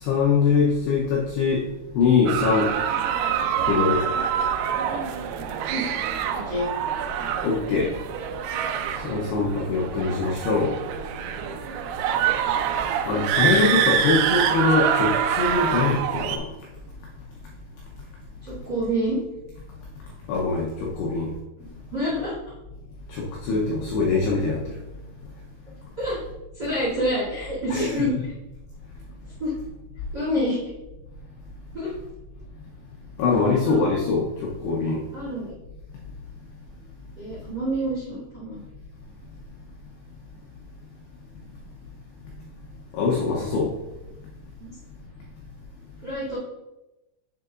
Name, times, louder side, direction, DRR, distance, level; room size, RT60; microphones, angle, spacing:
voice 1, 0.0-1.7 1.9-2.7 3.7-4.0 7.4-7.9 9.0-10.8 13.1-16.5 20.3-21.3 23.1-24.6 27.7-28.0 33.2-35.0 42.9-43.7, left 4 dB, 85° left, -2 dB, 2.3 m, -23 dB
sound 1, 2.3-16.4, right 8 dB, 85° right, 3.3 m, -25 dB
voice 2, 6.3-6.7 13.1-13.7 18.4-19.2 21.6-21.7 21.9-22.3 26.0-26.2 26.5-28.1 29.4-29.5 30.1-30.6 31.7-31.9 33.3-33.8 35.1-35.5 37.1-38.6 44.6-44.8 46.0-46.4, equal, 35° right, -8 dB, 1.7 m, -28 dB
7.4 x 6.7 x 2.5 m, 0.96 s
omnidirectional pair, 6.0 m